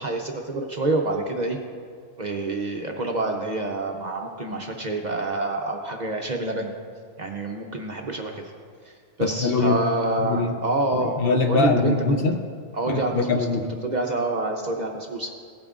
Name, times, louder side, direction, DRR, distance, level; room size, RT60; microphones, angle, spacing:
voice 1, 0.0-1.6 2.2-6.7 7.2-8.4 8.8-8.9 9.2-11.2 11.5-11.9 12.7-13.5 13.8-15.3, right 2 dB, 45° right, 2 dB, 0.6 m, -27 dB
voice 2, 9.2-9.8 10.2-10.5 10.9-12.4 12.9-13.6, left 3 dB, 55° left, 4 dB, 0.8 m, -23 dB
16.5 x 8.7 x 2.4 m, 2.1 s
omnidirectional pair, 1.3 m